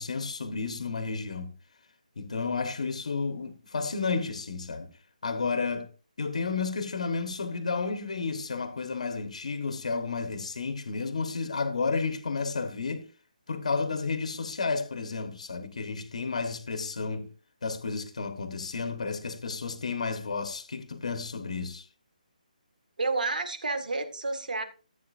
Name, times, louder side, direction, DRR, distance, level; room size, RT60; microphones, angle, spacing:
voice 1, 0.0-1.5 2.2-4.9 5.2-5.9 6.2-13.0 13.5-17.3 17.6-21.9, left 4 dB, 50° left, 1.4 m, -32 dB
voice 2, 23.0-24.6, right 3 dB, 75° right, 2.0 m, -30 dB
14.0 x 8.5 x 2.6 m
hypercardioid pair, 180°, 5 cm